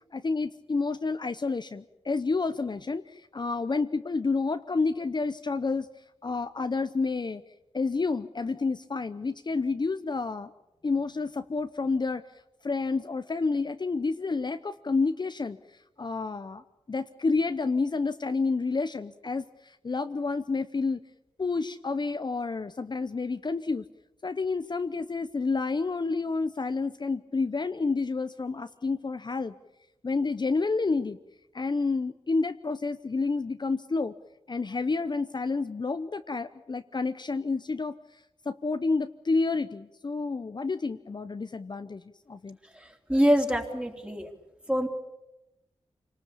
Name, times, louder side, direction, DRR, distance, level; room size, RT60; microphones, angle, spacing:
voice 1, 0.1-5.9 6.2-7.4 7.7-10.5 10.8-12.2 12.6-15.6 16.0-21.0 21.4-23.8 24.2-29.5 30.0-31.2 31.5-34.1 34.5-38.2 38.4-42.0 42.3-42.6, left 4 dB, 40° left, 9 dB, 0.8 m, -29 dB
voice 2, 42.7-44.3 44.7-44.9, equal, 10° right, 3 dB, 3.4 m, -25 dB
27.0 x 19.5 x 8.5 m, 0.96 s
wide cardioid pair, 85°, 11 cm